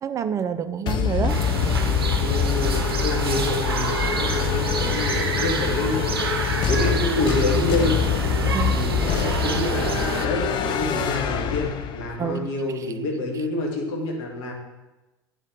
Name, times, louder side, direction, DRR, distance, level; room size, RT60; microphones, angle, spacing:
voice 1, 0.0-1.4 3.3-3.5 8.5-8.8 9.3-9.4 12.2-12.5 12.7-12.9, right 7 dB, 25° right, 11 dB, 0.4 m, -28 dB
sound 1, 0.9-12.3, left 7 dB, 40° left, 0.5 m, -25 dB
sound 2, 1.3-10.3, right 5 dB, 80° right, 0.5 m, -28 dB
voice 2, 2.2-8.1 8.7-14.5, left 2 dB, 60° left, 0 dB, 1.4 m, -27 dB
8.4 x 4.5 x 3.6 m, 1.1 s
figure-of-eight pair, 70°, 12 cm